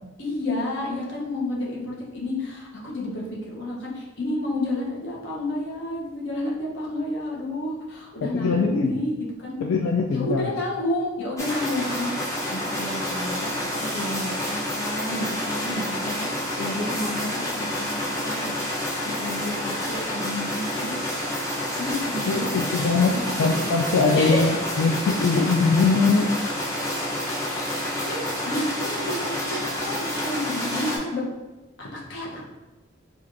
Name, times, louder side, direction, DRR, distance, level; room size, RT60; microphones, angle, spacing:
voice 1, 0.2-9.6 10.1-16.3 16.6-20.9 21.8-23.5 24.1-24.5 27.4-31.2 31.8-32.4, left 1 dB, 65° left, -3 dB, 0.8 m, -31 dB
voice 2, 8.2-8.9 9.6-10.5 22.3-26.3, left 4 dB, 90° left, 0 dB, 0.3 m, -22 dB
sound 1, 11.4-31.0, left 1 dB, 15° left, 0.7 m, -29 dB
4.4 x 2.4 x 2.5 m, 1.2 s
head